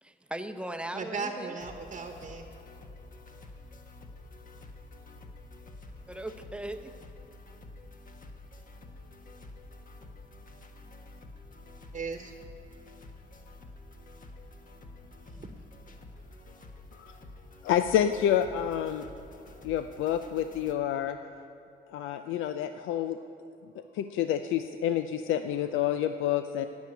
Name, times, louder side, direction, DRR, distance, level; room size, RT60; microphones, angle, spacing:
voice 1, 0.0-1.6 6.1-6.9, right 1 dB, 5° right, 8 dB, 0.8 m, -38 dB
voice 2, 0.9-2.4 11.9-12.3 15.3-15.5, right 4 dB, 35° right, 4 dB, 1.1 m, -37 dB
sound 1, 1.6-20.7, left 2 dB, 40° left, 1.5 m, -49 dB
voice 3, 17.6-19.1 19.6-21.2 21.9-23.2 23.9-26.7, left 10 dB, 85° left, 9 dB, 0.5 m, -28 dB
16.5 x 6.2 x 9.5 m, 2.7 s
cardioid pair, 90°, 20 cm